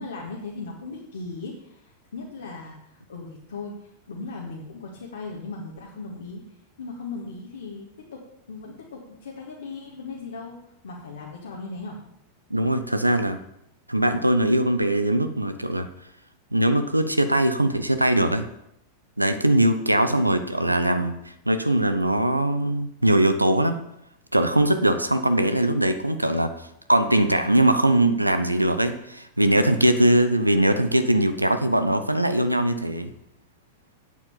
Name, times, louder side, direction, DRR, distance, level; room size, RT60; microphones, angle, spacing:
voice 1, 0.0-6.4 6.8-10.6 10.8-12.0, left 3 dB, 65° left, -2 dB, 2.0 m, -38 dB
voice 2, 12.5-13.4 13.9-15.9 16.5-18.5 19.2-21.1 21.5-23.8 24.3-33.1, right 1 dB, 85° right, 9 dB, 0.8 m, -21 dB
8.5 x 8.3 x 7.0 m, 0.78 s
figure-of-eight pair, 90°, 0 cm